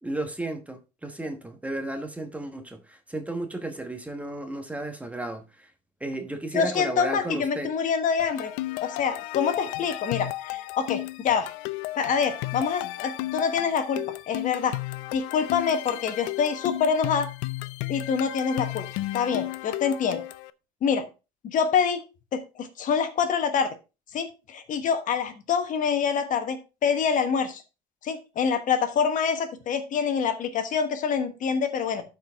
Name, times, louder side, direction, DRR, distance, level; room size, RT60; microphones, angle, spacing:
voice 1, 0.0-5.7 6.0-7.7, right 1 dB, 5° right, 1.2 m, -34 dB
voice 2, 6.5-8.5 8.8-11.5 12.0-14.8 15.1-17.3 17.9-18.8 19.1-20.2 20.8-21.1 21.4-22.0 22.3-23.7 24.1-27.6 28.0-32.0, left 6 dB, 45° left, 1.3 m, -26 dB
sound 1, 8.2-20.5, left 18 dB, 75° left, 0.5 m, -34 dB
12.0 x 4.7 x 3.5 m
cardioid pair, 120°, 18 cm